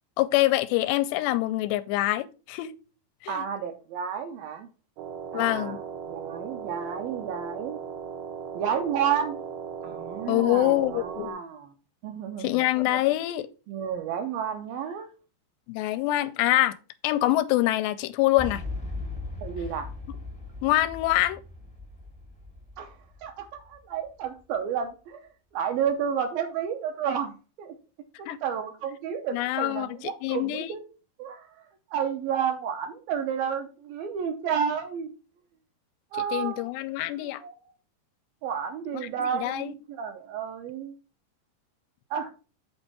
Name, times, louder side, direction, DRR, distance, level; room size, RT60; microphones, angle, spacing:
voice 1, 0.2-2.7 3.2-3.4 5.3-5.8 10.3-11.4 12.4-13.5 15.7-16.8 17.0-18.6 20.6-21.4 28.3-28.4 29.3-30.8 36.3-37.4 38.9-39.8, left 16 dB, 85° left, 2.7 m, -25 dB
voice 2, 3.3-4.7 5.3-7.8 8.6-9.4 9.8-11.7 12.0-12.6 13.7-15.1 19.4-19.9 22.8-22.9 23.2-27.8 28.2-30.8 31.2-31.7 31.9-35.1 36.1-36.7 37.2-37.6 38.4-41.0 42.1-42.3, right 8 dB, 75° right, 2.3 m, -31 dB
sound 1, 5.0-11.3, right 6 dB, 90° right, 3.2 m, -37 dB
Boom, 18.4-24.3, left 2 dB, 5° left, 0.7 m, -39 dB
8.1 x 4.4 x 5.9 m
omnidirectional pair, 4.9 m